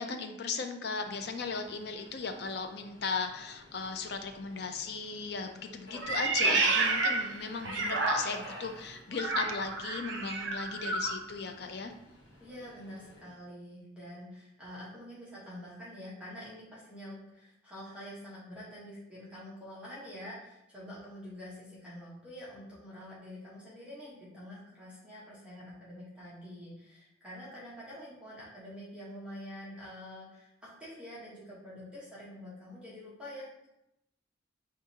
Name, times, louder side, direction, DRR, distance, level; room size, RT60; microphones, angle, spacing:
voice 1, 0.0-11.9, left 4 dB, 60° left, 6 dB, 0.5 m, -37 dB
Subway metro underground, 0.9-13.3, equal, 85° left, 1.4 m, -52 dB
Meow, 6.0-8.6 9.1-11.2, right 3 dB, 85° right, 0.5 m, -30 dB
voice 2, 12.4-33.7, left 1 dB, 5° right, -9 dB, 1.1 m, -46 dB
4.9 x 3.5 x 2.8 m, 0.83 s
head